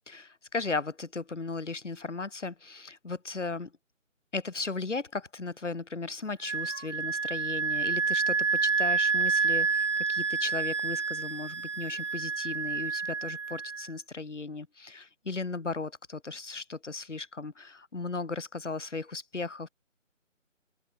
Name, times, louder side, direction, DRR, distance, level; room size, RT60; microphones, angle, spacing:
voice 1, 0.1-3.7 4.3-19.7, left 3 dB, 65° left, 2.7 m, -36 dB
Wind instrument woodwind instrument, 6.4-13.9, right 5 dB, 65° right, 0.9 m, -29 dB
open air
figure-of-eight pair, 180°, 38 cm